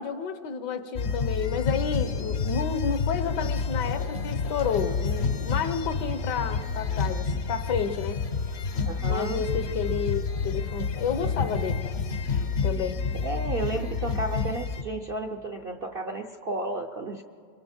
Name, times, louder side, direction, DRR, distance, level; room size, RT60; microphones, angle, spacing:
voice 1, 0.0-8.2 9.1-11.9 12.6-13.0, left 6 dB, 75° left, 10 dB, 1.6 m, -30 dB
sound 1, 0.9-14.8, left 5 dB, 55° left, 0.8 m, -29 dB
sound 2, 4.5-10.0, right 6 dB, 90° right, 1.7 m, -48 dB
voice 2, 8.9-9.4 13.2-17.2, right 2 dB, 55° right, 4 dB, 0.6 m, -32 dB
27.0 x 23.0 x 4.4 m, 2.2 s
omnidirectional pair, 1.9 m